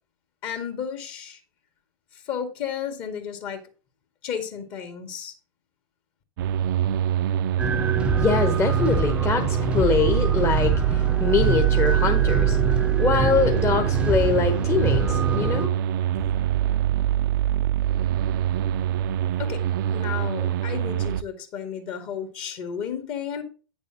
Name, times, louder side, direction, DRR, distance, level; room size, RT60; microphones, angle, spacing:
voice 1, 0.4-1.4 2.1-3.6 4.2-5.3 19.4-19.6 19.9-23.4, left 8 dB, 45° left, 1.9 m, -33 dB
sound 1, 6.4-21.2, right 11 dB, 60° right, 0.4 m, -24 dB
sound 2, 7.6-15.7, right 3 dB, 10° right, 0.5 m, -27 dB
voice 2, 8.1-12.6 13.0-15.7, left 5 dB, 20° left, 1.0 m, -23 dB
8.8 x 6.8 x 2.8 m
hypercardioid pair, 95°, 12 cm